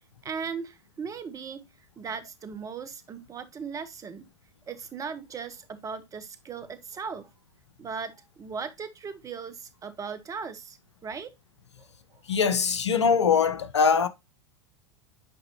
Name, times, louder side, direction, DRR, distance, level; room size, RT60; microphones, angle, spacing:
voice 1, 0.2-1.7 2.0-4.3 4.7-7.3 7.8-10.8 11.0-11.3 11.8-12.2, right 6 dB, 25° right, 1.0 m, -38 dB
voice 2, 12.3-14.1, left 6 dB, 80° left, 0.7 m, -22 dB
8.6 x 4.9 x 2.8 m
figure-of-eight pair, 90°, 14 cm